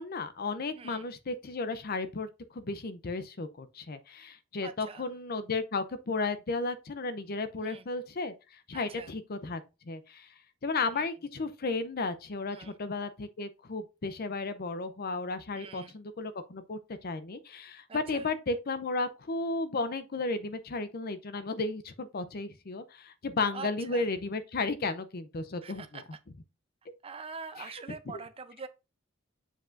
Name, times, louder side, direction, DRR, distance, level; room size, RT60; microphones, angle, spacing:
voice 1, 0.0-9.6 9.9-10.3 10.6-26.0 27.6-27.7, left 3 dB, 50° left, 0.6 m, -34 dB
voice 2, 0.7-1.1 4.6-5.1 7.6-7.8 8.7-9.1 12.5-12.7 15.5-16.0 17.9-18.3 23.5-24.0 25.6-26.2 27.0-28.7, right 5 dB, 30° right, 0.6 m, -44 dB
7.6 x 5.0 x 2.6 m
head